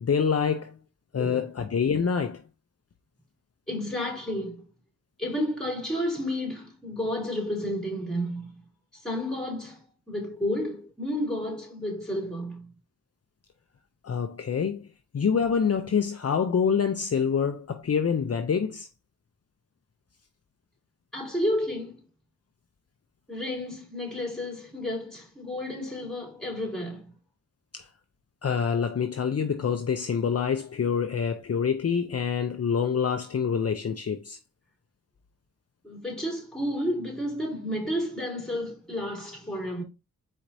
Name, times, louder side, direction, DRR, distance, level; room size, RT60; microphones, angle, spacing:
voice 1, 0.0-0.7 1.1-2.4 14.0-14.9 15.1-18.9 27.7-27.9 28.4-34.4, left 6 dB, 50° left, 0.5 m, -26 dB
voice 2, 3.7-4.6 5.2-8.6 8.9-12.7 21.1-22.0 23.3-27.1 35.8-39.8, left 1 dB, ahead, 3.0 m, -31 dB
4.6 x 4.2 x 2.6 m
wide cardioid pair, 60°, 32 cm